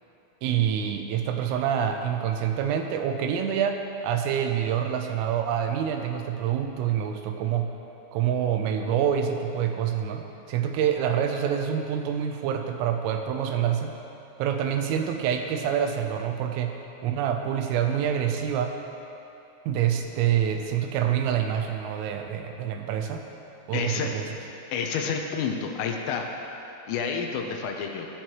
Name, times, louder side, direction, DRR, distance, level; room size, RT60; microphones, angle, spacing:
voice 1, 0.4-7.7 8.1-13.9 14.4-16.7 17.0-18.7 19.7-23.2 23.7-24.3, right 9 dB, 90° right, 5 dB, 3.3 m, -26 dB
voice 2, 23.7-24.1 24.7-26.3 26.9-28.1, left 6 dB, 85° left, 2 dB, 3.4 m, -29 dB
19.5 x 8.9 x 3.1 m, 2.9 s
omnidirectional pair, 5.9 m